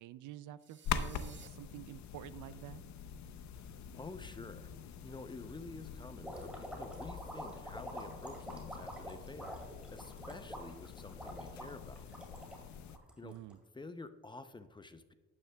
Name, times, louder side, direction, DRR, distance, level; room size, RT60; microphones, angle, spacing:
voice 1, 0.0-2.8 13.2-13.6, right 13 dB, 80° right, 16 dB, 0.4 m, -48 dB
sound 1, 0.6-1.5, right 7 dB, 40° right, 0.8 m, -57 dB
sound 2, 0.8-13.0, left 7 dB, 70° left, 0.6 m, -45 dB
voice 2, 3.9-4.7 5.0-9.6 9.9-12.1 13.2-13.3 13.7-15.1, left 3 dB, 15° left, 10 dB, 0.6 m, -50 dB
sound 3, 6.2-13.5, right 1 dB, 5° right, 2.2 m, -46 dB
12.0 x 9.6 x 2.2 m, 1.2 s
cardioid pair, 90°, 30 cm